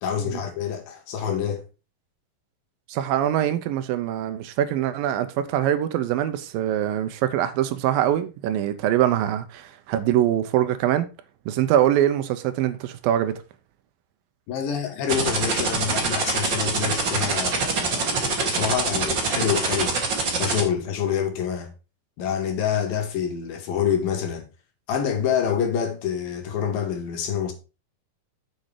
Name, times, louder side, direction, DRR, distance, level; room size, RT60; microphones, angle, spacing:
voice 1, 0.0-1.7 14.5-20.0 20.4-21.7 22.2-24.5 24.9-27.5, left 8 dB, 75° left, 3.4 m, -27 dB
voice 2, 2.9-11.1 11.5-13.4, right 11 dB, 80° right, 2.4 m, -23 dB
sound 1, 15.1-20.6, right 4 dB, 40° right, 2.1 m, -24 dB
7.3 x 6.5 x 4.9 m
omnidirectional pair, 4.2 m